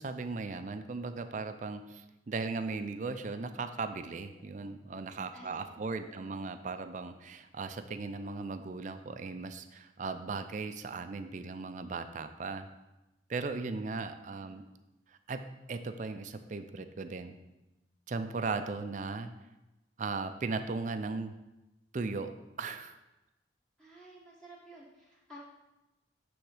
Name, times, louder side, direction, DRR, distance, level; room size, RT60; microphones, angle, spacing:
voice 1, 0.0-12.7 13.3-14.6 15.1-17.4 18.1-19.3 20.0-21.3 21.9-22.3 22.6-22.9, right 4 dB, 45° right, 9 dB, 0.4 m, -37 dB
voice 2, 4.4-4.7 5.3-6.4 13.7-13.9 14.4-14.6 23.8-25.4, equal, 5° left, -7 dB, 1.2 m, -54 dB
9.0 x 3.5 x 4.9 m, 0.99 s
head